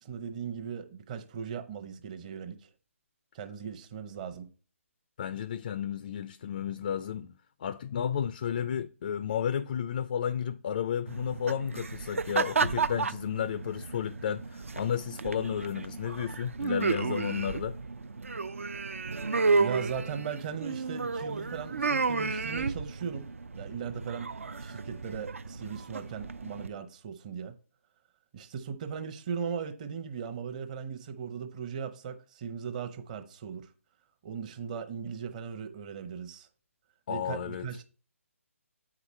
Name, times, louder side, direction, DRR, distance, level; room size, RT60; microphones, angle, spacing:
voice 1, 0.0-2.7 3.3-4.5 19.6-24.3 24.6-27.5 28.3-33.7 34.2-36.5 37.1-37.8, right 7 dB, 30° right, 0.8 m, -38 dB
voice 2, 5.2-7.3 7.6-17.8 37.1-37.7, left 8 dB, 40° left, 0.4 m, -32 dB
sound 1, 11.1-26.7, right 4 dB, 65° right, 0.5 m, -32 dB
8.1 x 5.0 x 4.3 m
figure-of-eight pair, 140°, 8 cm